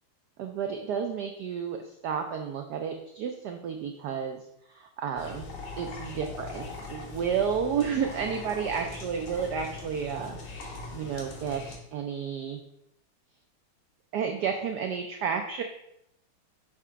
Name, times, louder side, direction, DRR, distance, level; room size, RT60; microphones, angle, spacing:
voice 1, 0.4-1.8 2.0-4.4 4.7-5.5 5.8-12.6 14.1-15.6, right 7 dB, 80° right, 4 dB, 0.9 m, -31 dB
sound 1, 5.2-11.8, left 3 dB, 75° left, 2.1 m, -41 dB
6.1 x 3.7 x 5.5 m, 0.80 s
omnidirectional pair, 2.4 m